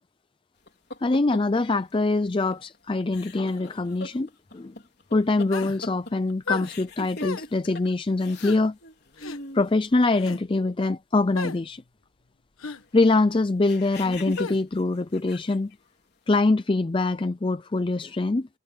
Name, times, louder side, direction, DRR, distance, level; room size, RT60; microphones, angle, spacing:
sound 1, 0.7-1.6 2.5-2.8 3.0-7.9 8.2-8.5 8.8-9.7 13.6-15.7, left 1 dB, 50° left, 4.5 m, -41 dB
voice 1, 1.0-4.3 4.5-4.7 5.1-8.8 9.5-11.8 12.9-15.7 16.3-18.5, left 2 dB, 25° left, 0.4 m, -24 dB
sound 2, 5.5-5.8 6.5-6.7 7.2-7.5 8.4-8.6 9.2-9.4 10.1-10.4 11.4-11.6 12.6-12.8 14.4-14.6, left 4 dB, 80° left, 1.5 m, -33 dB
head